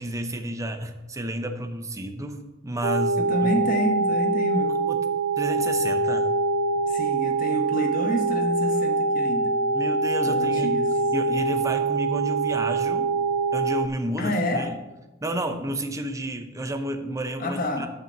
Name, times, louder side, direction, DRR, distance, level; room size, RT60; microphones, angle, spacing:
voice 1, 0.0-3.5 4.9-5.0 5.4-6.3 9.7-10.8 11.1-13.1 13.5-14.8 15.2-17.9, right 1 dB, 15° right, 6 dB, 0.7 m, -31 dB
sound 1, 2.8-13.9, right 3 dB, 75° right, 0.4 m, -24 dB
voice 2, 3.2-4.8 6.9-9.6 10.3-10.9 14.2-14.7 17.4-17.9, equal, 45° left, 4 dB, 1.0 m, -28 dB
9.1 x 5.2 x 6.7 m, 1.1 s
head